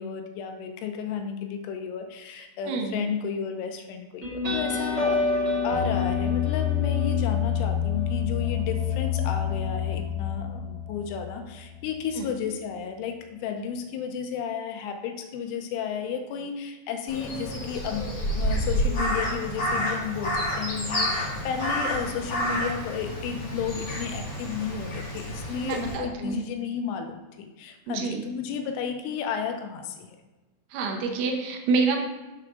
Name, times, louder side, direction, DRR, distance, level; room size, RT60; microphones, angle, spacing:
voice 1, 0.0-5.2 5.6-18.0 18.3-30.2, left 7 dB, 80° left, 6 dB, 3.0 m, -33 dB
voice 2, 2.6-3.0 12.2-12.3 25.6-26.4 27.9-28.2 30.7-32.0, right 4 dB, 80° right, 3 dB, 3.2 m, -27 dB
sound 1, 4.2-11.4, left 6 dB, 30° right, 1.2 m, -27 dB
Crow, 17.1-25.9, equal, 40° left, 1.6 m, -29 dB
7.7 x 4.7 x 5.9 m, 1.1 s
omnidirectional pair, 5.8 m